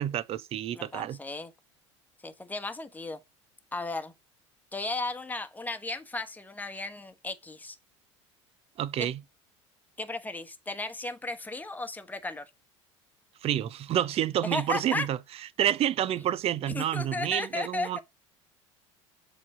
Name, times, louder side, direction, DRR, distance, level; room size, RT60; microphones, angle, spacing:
voice 1, 0.0-1.2 8.8-9.2 13.4-15.2 15.6-18.0, right 11 dB, 40° right, 0.6 m, -29 dB
voice 2, 0.7-1.5 2.2-3.2 3.7-4.1 4.7-7.8 9.0-9.1 10.0-12.5 14.4-15.1 16.7-17.9, left 2 dB, 10° left, 1.2 m, -35 dB
7.5 x 4.0 x 6.1 m
figure-of-eight pair, 70°, 16 cm